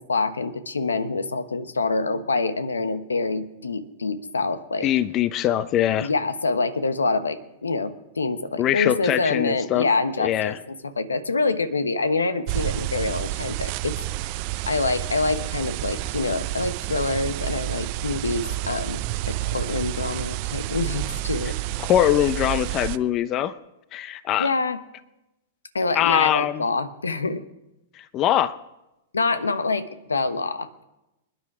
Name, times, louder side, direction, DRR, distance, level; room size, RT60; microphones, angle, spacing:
voice 1, 0.0-4.9 6.0-14.0 14.7-21.6 24.4-24.8 25.7-27.4 29.1-30.8, left 3 dB, 90° left, 12 dB, 1.2 m, -26 dB
voice 2, 4.8-6.1 8.6-9.9 10.2-10.6 21.8-23.5 23.9-24.5 25.9-26.6 28.0-28.5, left 12 dB, 35° left, 15 dB, 0.7 m, -22 dB
sound 1, 12.5-23.0, right 17 dB, 50° right, 0.6 m, -29 dB
27.0 x 10.5 x 4.9 m, 0.96 s
hypercardioid pair, 105°, 0 cm